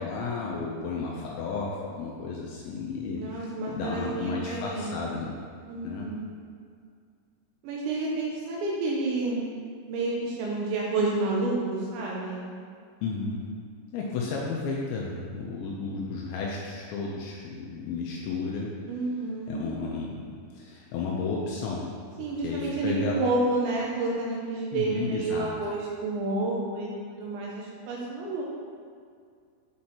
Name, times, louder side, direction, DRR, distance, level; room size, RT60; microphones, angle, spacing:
voice 1, 0.0-5.3 5.8-6.1 13.0-13.4 13.9-18.7 19.5-21.9 22.2-23.2 24.7-25.5, left 4 dB, 80° left, -3 dB, 2.7 m, -33 dB
voice 2, 3.2-5.0 5.7-6.3 7.6-9.4 9.9-12.4 18.9-19.6 22.2-28.4, right 2 dB, 80° right, -3 dB, 2.8 m, -30 dB
10.0 x 4.3 x 2.8 m, 2.2 s
omnidirectional pair, 5.7 m